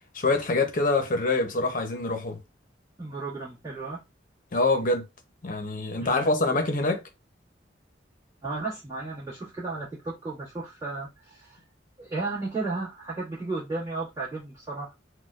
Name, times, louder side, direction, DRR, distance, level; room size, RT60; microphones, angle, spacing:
voice 1, 0.1-2.4 4.5-5.0 5.4-7.0, left 2 dB, 45° left, 0.7 m, -25 dB
voice 2, 3.0-4.0 6.0-6.2 8.4-11.6 12.0-14.9, right 3 dB, 20° right, 1.7 m, -34 dB
4.1 x 2.2 x 2.5 m
head